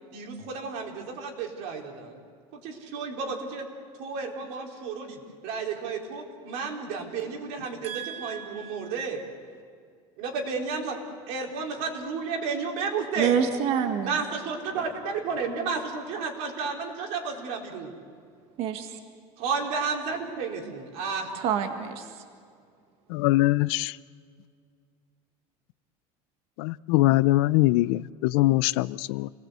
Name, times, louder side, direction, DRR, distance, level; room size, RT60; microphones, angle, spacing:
voice 1, 0.1-2.2 2.5-3.7 4.0-9.2 10.2-11.0 11.3-13.4 14.0-17.9 19.4-21.3, right 5 dB, 75° right, 4.2 m, -32 dB
voice 2, 7.8-8.9 13.2-14.2 18.6-19.0 21.3-22.2, right 8 dB, 55° right, 1.7 m, -28 dB
voice 3, 23.1-24.0 26.6-29.3, left 18 dB, 90° left, 0.5 m, -22 dB
28.0 x 19.0 x 8.1 m
cardioid pair, 155°, 13 cm